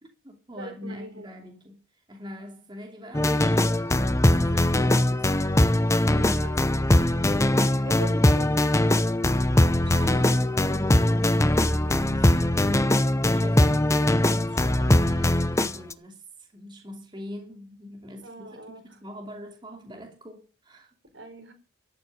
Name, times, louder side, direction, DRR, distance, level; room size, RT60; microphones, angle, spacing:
voice 1, 0.0-5.4 6.0-6.6 9.3-12.4 13.3-21.0, left 1 dB, 25° right, 2.9 m, -43 dB
voice 2, 0.6-1.3 6.4-6.8 7.8-8.5 18.2-18.8 21.1-21.5, right 1 dB, 65° right, 5.0 m, -41 dB
sound 1, 3.1-15.9, left 1 dB, 15° left, 0.7 m, -21 dB
13.5 x 7.2 x 9.8 m
head